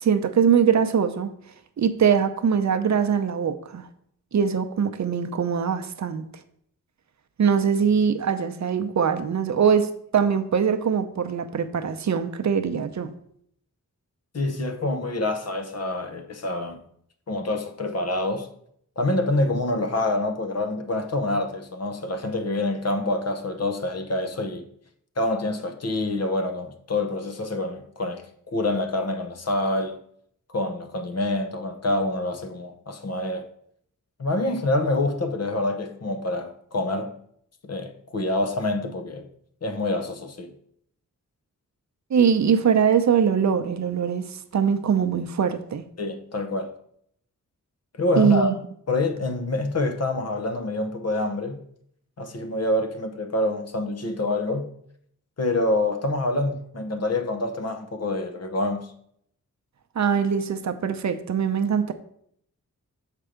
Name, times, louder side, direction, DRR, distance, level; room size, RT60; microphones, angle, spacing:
voice 1, 0.0-1.3 1.8-3.8 4.3-6.2 7.4-13.1 42.1-44.2 44.5-45.8 48.2-48.5 60.0-61.9, right 7 dB, 60° right, 0.6 m, -22 dB
voice 2, 14.3-16.8 17.3-18.5 19.0-24.7 25.2-30.0 30.5-33.5 34.2-37.2 37.6-39.3 39.6-40.5 46.0-46.7 48.0-48.5 48.9-51.6 52.2-54.7 55.4-58.9, left 2 dB, 50° left, 0.8 m, -26 dB
6.7 x 4.5 x 5.0 m
wide cardioid pair, 145°, 32 cm